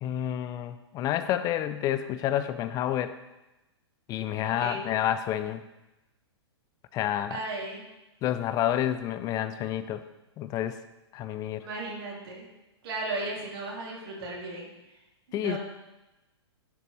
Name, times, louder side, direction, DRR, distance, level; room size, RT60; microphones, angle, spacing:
voice 1, 0.0-3.1 4.1-5.6 6.9-7.4 8.2-10.0 10.4-10.8 11.1-11.7 15.3-15.6, left 11 dB, 25° left, 12 dB, 0.5 m, -29 dB
voice 2, 4.4-4.8 7.3-7.8 11.6-12.4 12.8-14.7 15.3-15.6, right 2 dB, 55° right, -2 dB, 2.9 m, -35 dB
11.0 x 6.6 x 3.3 m, 1.0 s
figure-of-eight pair, 110°, 14 cm